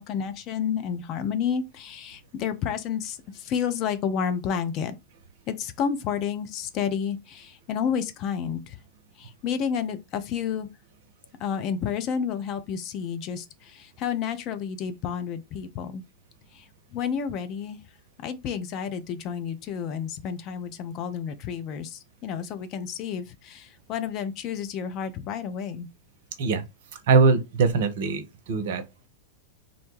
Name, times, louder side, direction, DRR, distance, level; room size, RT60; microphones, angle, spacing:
voice 1, 0.0-5.0 5.5-8.8 9.2-10.7 11.4-16.0 16.5-17.8 18.2-25.9, left 7 dB, 40° left, 0.4 m, -30 dB
voice 2, 27.1-28.2 28.5-28.8, right 4 dB, 55° right, 0.5 m, -21 dB
2.5 x 2.1 x 3.1 m
figure-of-eight pair, 90°, 0 cm